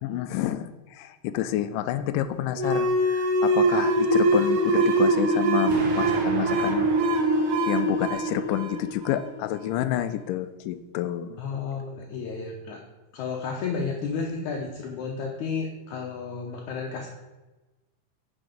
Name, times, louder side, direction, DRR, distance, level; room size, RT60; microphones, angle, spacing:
voice 1, 0.0-6.9 7.7-11.4, left 12 dB, 90° left, 12 dB, 2.2 m, -29 dB
sound 1, 2.6-9.8, right 2 dB, 80° right, 2.6 m, -23 dB
Explosion, 5.7-8.7, right 2 dB, 50° right, 2.9 m, -36 dB
voice 2, 11.4-12.8 13.1-17.1, left 5 dB, 70° left, 0 dB, 2.2 m, -32 dB
10.0 x 5.8 x 5.2 m, 1.1 s
omnidirectional pair, 3.7 m